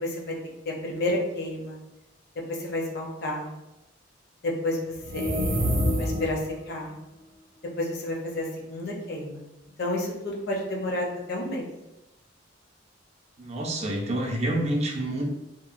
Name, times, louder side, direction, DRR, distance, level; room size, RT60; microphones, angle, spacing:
voice 1, 0.0-0.4 0.7-1.8 2.5-3.5 4.4-5.7 6.0-6.9 7.8-9.4 9.8-11.6, left 1 dB, 55° left, -1 dB, 0.6 m, -30 dB
sound 1, 5.0-6.5, equal, 75° right, 0.6 m, -26 dB
voice 2, 13.4-15.2, right 1 dB, 35° right, 0 dB, 0.4 m, -28 dB
2.8 x 2.1 x 2.4 m, 0.92 s
head